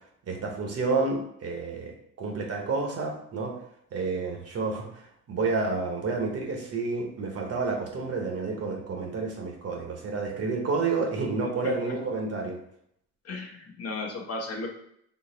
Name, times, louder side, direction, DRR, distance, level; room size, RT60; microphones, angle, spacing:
voice 1, 0.3-3.5 3.9-12.6, right 4 dB, 55° right, 1 dB, 1.0 m, -30 dB
voice 2, 11.6-11.9 13.2-14.7, left 3 dB, 55° left, 1 dB, 0.9 m, -35 dB
3.8 x 2.0 x 3.8 m, 0.72 s
cardioid pair, 90°, 30 cm